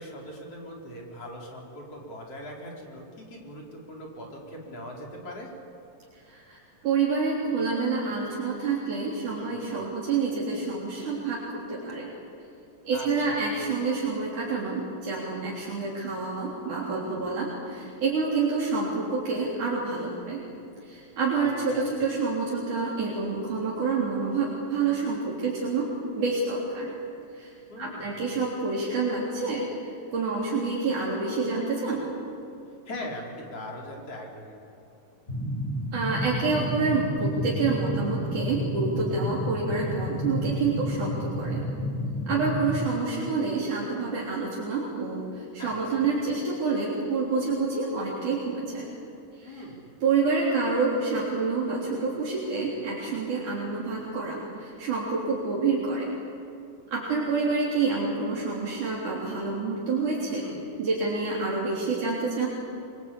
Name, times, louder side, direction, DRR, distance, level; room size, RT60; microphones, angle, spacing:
voice 1, 0.0-5.5 9.4-9.6 12.9-13.4 21.3-21.9 27.7-28.2 32.9-34.6 42.3-42.6 45.6-46.1 49.4-49.9 60.4-60.7, left 1 dB, 45° left, -2 dB, 5.1 m, -41 dB
voice 2, 6.3-12.1 12.8-20.4 20.9-25.9 26.2-26.9 27.4-27.5 27.8-32.1 35.9-41.6 42.3-48.9 49.4-49.6 50.0-56.1 56.9-60.4 60.8-62.5, right 4 dB, 65° right, -6 dB, 5.1 m, -28 dB
sound 1, 35.3-42.8, equal, 15° left, 7.1 m, -30 dB
25.5 x 24.5 x 8.5 m, 2.5 s
omnidirectional pair, 3.8 m